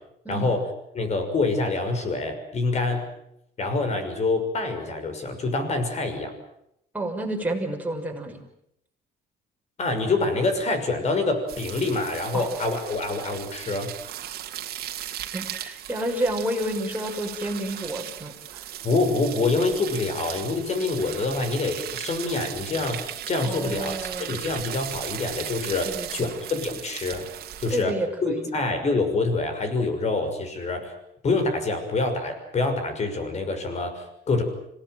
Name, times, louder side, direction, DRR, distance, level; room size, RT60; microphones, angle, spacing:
voice 1, 0.3-0.7 0.9-3.1 3.6-6.3 9.8-13.9 18.8-27.2 27.6-27.9 28.2-30.9 31.2-34.4, left 3 dB, 40° left, 8 dB, 6.3 m, -26 dB
voice 2, 6.9-8.4 12.3-12.5 15.3-18.6 23.4-24.4 25.9-26.3 27.7-28.5, right 1 dB, 10° right, 1 dB, 6.2 m, -30 dB
sound 1, 11.5-27.8, right 12 dB, 65° right, 2.2 m, -37 dB
26.5 x 18.0 x 9.3 m, 0.78 s
cardioid pair, 110°, 17 cm